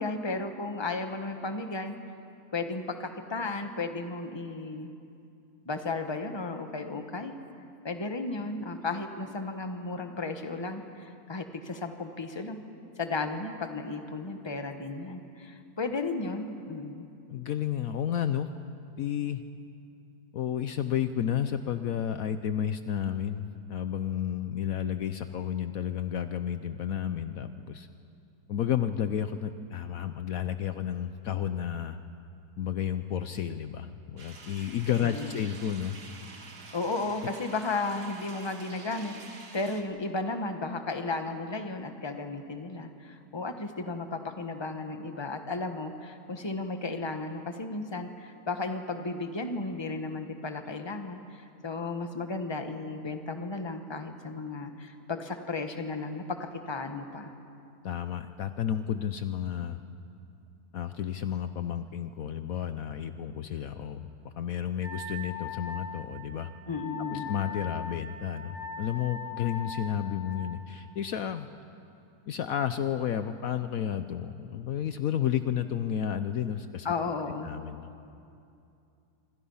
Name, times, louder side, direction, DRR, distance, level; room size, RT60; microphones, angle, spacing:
voice 1, 0.0-1.9 2.5-4.9 5.6-7.3 7.8-12.6 13.0-17.1 35.0-35.4 36.7-56.4 56.7-57.3 66.7-67.3 76.8-77.5, left 3 dB, 20° left, 6 dB, 1.2 m, -34 dB
voice 2, 17.3-18.5 19.0-19.4 20.3-27.9 28.5-32.0 32.6-36.0 57.8-59.8 60.7-64.1 64.4-66.5 67.1-71.5 72.3-76.9 77.4-77.9, left 9 dB, 65° left, 10 dB, 1.1 m, -31 dB
sound 1, 34.2-39.8, right 3 dB, 75° right, 2.3 m, -48 dB
Wind instrument woodwind instrument, 64.8-70.5, left 4 dB, 30° right, 6.4 m, -40 dB
26.5 x 25.5 x 5.6 m, 2.6 s
omnidirectional pair, 1.7 m